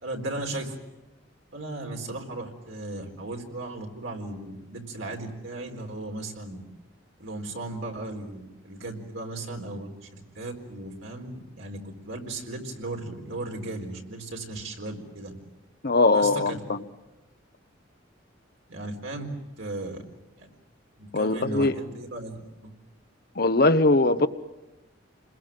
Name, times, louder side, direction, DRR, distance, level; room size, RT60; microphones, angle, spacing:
voice 1, 0.0-0.8 1.5-6.6 7.2-15.3 16.1-16.6 18.7-19.3 19.6-20.0 20.4-20.5 21.0-22.7, right 2 dB, 80° right, 4.1 m, -36 dB
voice 2, 15.8-16.8 21.1-21.7 23.4-24.3, left 2 dB, 50° left, 1.0 m, -21 dB
28.5 x 21.5 x 7.7 m
head